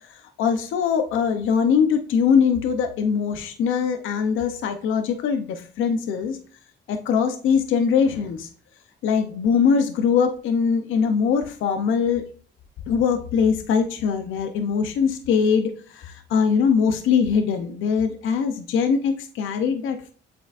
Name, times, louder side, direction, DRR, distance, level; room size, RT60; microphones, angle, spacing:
voice 1, 0.1-6.4 6.9-8.5 9.0-12.2 12.9-20.1, left 6 dB, 80° left, 7 dB, 0.7 m, -22 dB
8.0 x 4.9 x 2.5 m, 0.44 s
cardioid pair, 90°, 20 cm